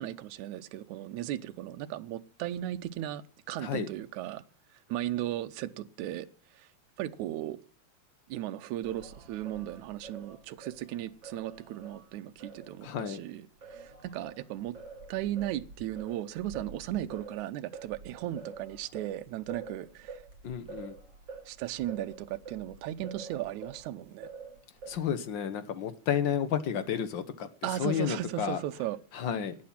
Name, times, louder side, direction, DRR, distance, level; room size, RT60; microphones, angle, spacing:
voice 1, 0.0-4.4 4.9-6.3 6.5-6.7 7.0-7.6 8.3-14.8 15.1-20.2 21.5-24.3 27.6-29.0, right 13 dB, 75° right, 2.2 m, -36 dB
Singing, 8.8-13.2 13.6-23.9 24.2-25.2, right 4 dB, 50° right, 3.9 m, -47 dB
voice 2, 12.8-13.2 20.4-20.9 24.9-27.5 27.8-28.6 29.1-29.6, left 8 dB, 65° left, 1.2 m, -31 dB
18.5 x 8.6 x 5.8 m
omnidirectional pair, 3.5 m